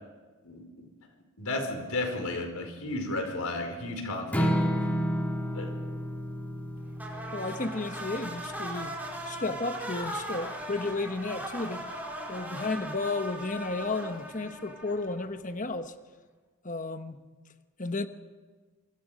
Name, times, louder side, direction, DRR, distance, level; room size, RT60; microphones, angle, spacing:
voice 1, 0.4-0.9 1.4-4.5 5.5-5.7, left 2 dB, 85° left, 5.0 m, -33 dB
Strum, 4.3-10.6, equal, 5° left, 1.8 m, -32 dB
sound 1, 7.0-15.4, right 1 dB, 10° right, 5.2 m, -39 dB
voice 2, 7.3-9.0 9.3-11.8 12.3-15.9 16.6-17.2 17.8-18.1, left 3 dB, 35° left, 1.1 m, -33 dB
26.0 x 24.5 x 5.2 m
head